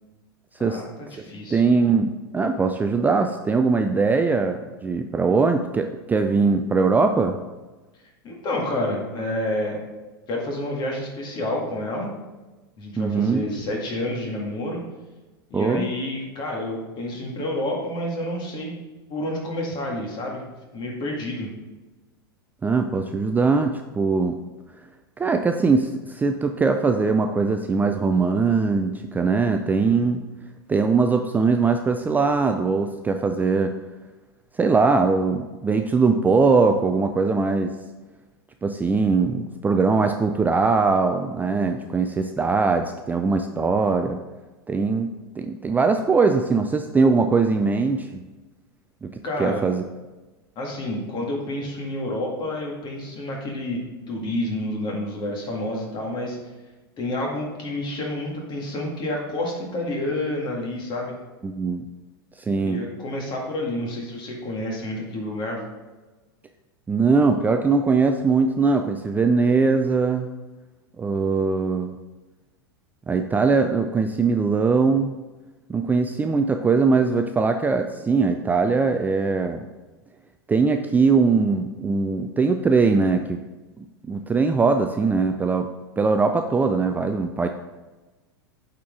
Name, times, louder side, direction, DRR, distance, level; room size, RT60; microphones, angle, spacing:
voice 1, 0.6-1.6 8.2-9.8 10.3-12.1 12.8-14.8 15.5-18.8 19.1-21.5 49.2-49.6 50.6-56.4 57.0-61.2 62.6-65.6, left 1 dB, 35° left, -1 dB, 2.1 m, -29 dB
voice 2, 1.5-7.4 13.0-13.4 15.5-15.9 22.6-24.4 25.2-30.2 30.7-33.8 34.5-37.7 38.6-44.2 44.7-45.1 45.4-48.2 49.0-49.8 61.4-61.9 62.4-62.8 66.9-70.3 71.0-72.0 73.1-75.1 75.7-79.7 80.5-83.4 83.8-87.5, right 4 dB, 15° right, 6 dB, 0.4 m, -21 dB
8.3 x 4.3 x 3.7 m, 1.2 s
hypercardioid pair, 100°, 13 cm